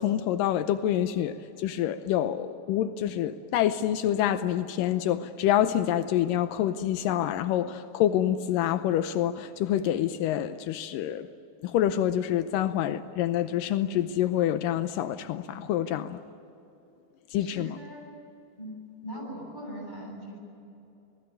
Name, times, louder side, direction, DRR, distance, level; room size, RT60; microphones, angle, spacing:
voice 1, 0.0-11.3 11.6-16.2 17.3-17.8, left 11 dB, 85° left, 2.0 m, -27 dB
voice 2, 17.4-18.1 18.6-20.4, equal, 10° left, 7.9 m, -41 dB
27.5 x 19.0 x 9.2 m
omnidirectional pair, 4.8 m